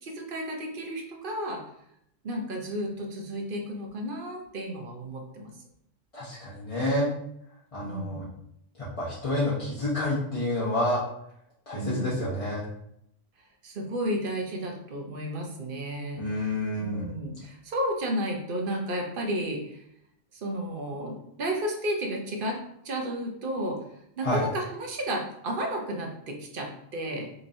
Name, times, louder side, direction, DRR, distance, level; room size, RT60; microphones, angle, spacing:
voice 1, 0.0-1.6 2.2-5.5 7.8-8.3 11.7-12.2 13.6-16.2 16.8-19.8 20.3-22.6 22.8-23.8 24.2-27.3, equal, 50° right, 1 dB, 0.9 m, -32 dB
voice 2, 6.1-7.1 7.7-8.2 8.8-11.0 11.7-12.6 16.1-17.1 24.2-24.5, left 1 dB, 30° left, -9 dB, 0.9 m, -28 dB
5.2 x 3.0 x 2.6 m, 0.75 s
omnidirectional pair, 1.3 m